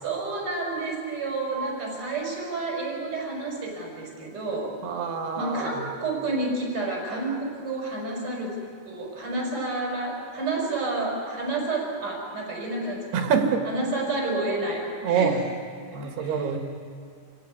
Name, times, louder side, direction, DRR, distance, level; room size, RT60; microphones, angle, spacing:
voice 1, 0.0-4.7 5.4-8.6 8.9-13.1 13.7-15.3 16.0-16.4, right 2 dB, 25° right, -1 dB, 6.1 m, -30 dB
voice 2, 4.8-5.9 13.1-13.7 15.0-15.4 15.9-16.6, right 6 dB, 65° right, 4 dB, 3.5 m, -25 dB
26.5 x 16.0 x 9.6 m, 2.2 s
omnidirectional pair, 5.6 m